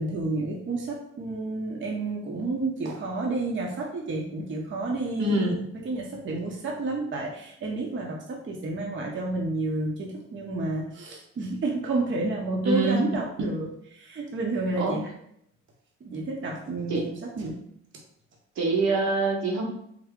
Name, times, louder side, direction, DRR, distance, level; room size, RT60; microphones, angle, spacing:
voice 1, 0.0-5.5 5.9-15.0 16.0-17.6, right 2 dB, 40° right, -1 dB, 0.7 m, -30 dB
voice 2, 5.2-5.6 12.6-13.1 14.8-15.0 16.9-17.1 18.6-19.7, right 3 dB, 65° right, 0 dB, 1.0 m, -25 dB
3.5 x 2.1 x 3.6 m, 0.71 s
cardioid pair, 90°, 30 cm